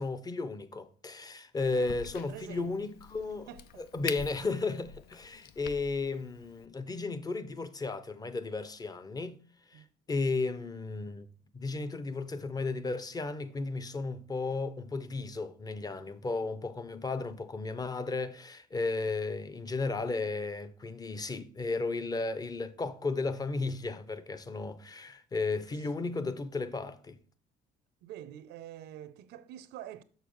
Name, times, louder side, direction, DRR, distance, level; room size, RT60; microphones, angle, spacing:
voice 1, 0.0-3.5 3.8-9.4 9.7-9.8 10.1-11.3 11.5-27.2, left 3 dB, 20° left, 0.7 m, -34 dB
Crack, 1.6-6.7, left 9 dB, 65° left, 0.5 m, -46 dB
voice 2, 2.3-2.9 3.5-3.8 9.7-9.9 28.0-30.0, right 11 dB, 85° right, 0.7 m, -46 dB
6.6 x 6.4 x 3.1 m
cardioid pair, 110°, 17 cm